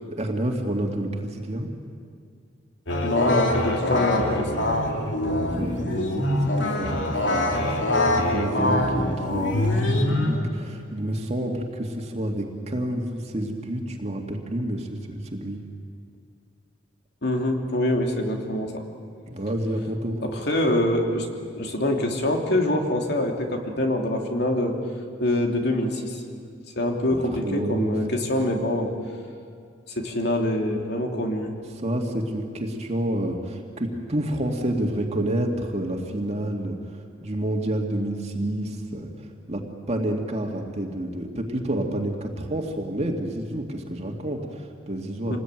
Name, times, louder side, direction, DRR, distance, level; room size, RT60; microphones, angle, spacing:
voice 1, 0.1-1.7 5.2-15.6 19.3-20.2 27.1-28.0 31.8-36.8 37.2-45.4, right 1 dB, 35° right, 2 dB, 2.2 m, -29 dB
sound 1, 2.9-10.4, left 1 dB, 85° left, 2.8 m, -24 dB
voice 2, 3.0-4.5 17.2-18.7 20.2-21.3 21.5-24.8 25.2-26.2 26.8-28.9 30.0-31.5 45.3-45.4, left 1 dB, 65° left, 2 dB, 2.9 m, -25 dB
26.5 x 20.0 x 9.2 m, 2.2 s
head